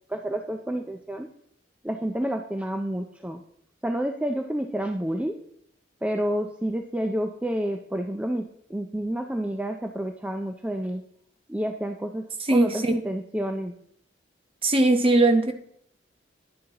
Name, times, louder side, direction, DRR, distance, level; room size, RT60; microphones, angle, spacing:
voice 1, 0.1-1.3 1.8-3.4 3.8-5.4 6.0-11.0 11.5-13.7, right 1 dB, 5° right, 5 dB, 0.4 m, -29 dB
voice 2, 12.5-13.0 14.6-15.5, right 2 dB, 30° right, 6 dB, 0.9 m, -20 dB
10.5 x 10.5 x 2.9 m, 0.68 s
head